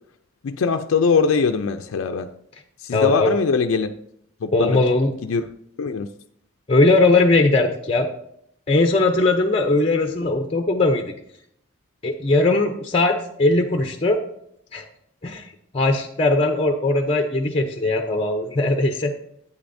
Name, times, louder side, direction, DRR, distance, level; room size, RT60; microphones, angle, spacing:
voice 1, 0.4-2.3 2.8-3.9 4.4-4.8 5.2-5.5 5.8-6.1, left 5 dB, 80° left, 6 dB, 0.4 m, -21 dB
voice 2, 2.9-3.3 4.5-5.1 6.7-8.1 8.7-11.1 12.0-14.2 14.7-14.8 15.2-15.4 15.7-19.1, left 2 dB, 30° left, 5 dB, 0.6 m, -19 dB
10.0 x 8.3 x 2.6 m, 0.72 s
head